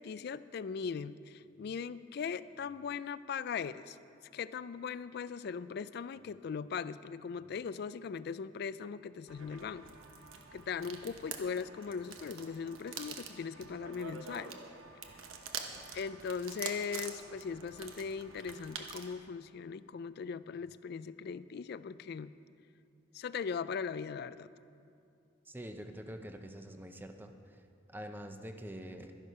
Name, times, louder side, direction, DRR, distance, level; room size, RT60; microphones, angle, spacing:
voice 1, 0.0-4.0 4.3-9.9 10.5-14.6 15.9-22.3 23.1-24.5, left 6 dB, 50° left, 16 dB, 0.3 m, -39 dB
sound 1, 9.3-19.1, right 6 dB, 80° right, 1.1 m, -46 dB
voice 2, 25.5-27.3 27.9-29.1, equal, 10° right, 6 dB, 0.6 m, -45 dB
12.0 x 11.0 x 5.5 m, 2.5 s
head